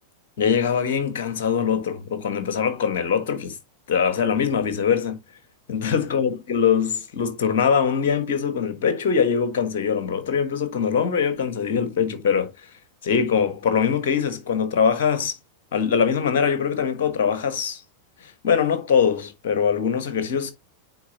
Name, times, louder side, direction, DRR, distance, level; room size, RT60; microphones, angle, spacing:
voice 1, 0.4-3.5 3.9-5.2 5.7-12.5 13.0-15.3 15.7-17.8 18.4-20.5, left 6 dB, 55° left, 1.4 m, -22 dB
9.1 x 3.9 x 2.9 m
figure-of-eight pair, 90°, 0 cm